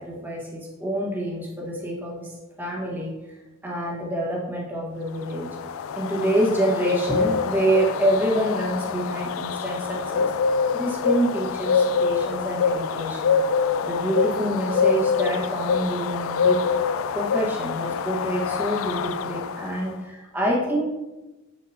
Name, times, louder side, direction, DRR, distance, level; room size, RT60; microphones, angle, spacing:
voice 1, 0.0-3.1 3.6-5.5 5.9-10.3 10.7-13.3 13.8-16.6 17.1-20.8, right 1 dB, 10° right, -4 dB, 1.5 m, -26 dB
sound 1, 5.2-19.8, left 5 dB, 65° left, 0.3 m, -25 dB
7.4 x 7.3 x 2.9 m, 1.1 s
head